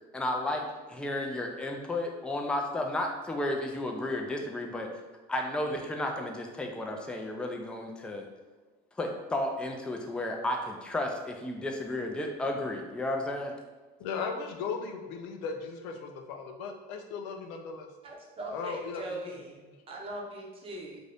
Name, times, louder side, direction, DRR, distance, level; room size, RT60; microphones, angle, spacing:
voice 1, 0.1-4.9 5.3-8.3 9.0-13.5, left 1 dB, 5° left, 2 dB, 0.3 m, -33 dB
voice 2, 14.0-17.9 18.5-19.3 19.7-19.8, left 5 dB, 90° left, 4 dB, 0.5 m, -37 dB
voice 3, 18.0-19.6 19.9-21.0, right 1 dB, 30° right, -1 dB, 0.7 m, -40 dB
2.6 x 2.5 x 3.3 m, 1.2 s
cardioid pair, 120°, 19 cm